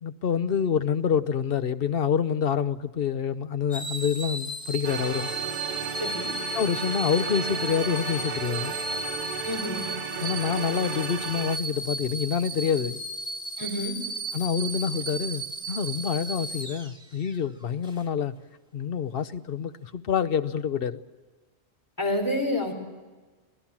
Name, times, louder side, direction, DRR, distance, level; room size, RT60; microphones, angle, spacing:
voice 1, 0.0-5.3 6.5-8.8 10.2-13.0 14.3-18.3 18.7-21.0, left 7 dB, 60° left, 1.0 m, -27 dB
sound 1, 3.7-17.4 17.8-18.0, right 1 dB, 5° right, 1.7 m, -35 dB
sound 2, 4.8-11.6, right 6 dB, 50° right, 0.9 m, -34 dB
voice 2, 6.0-6.3 9.4-9.8 13.6-13.9 22.0-22.7, left 1 dB, 15° left, 4.3 m, -28 dB
25.5 x 17.5 x 7.3 m
omnidirectional pair, 1.2 m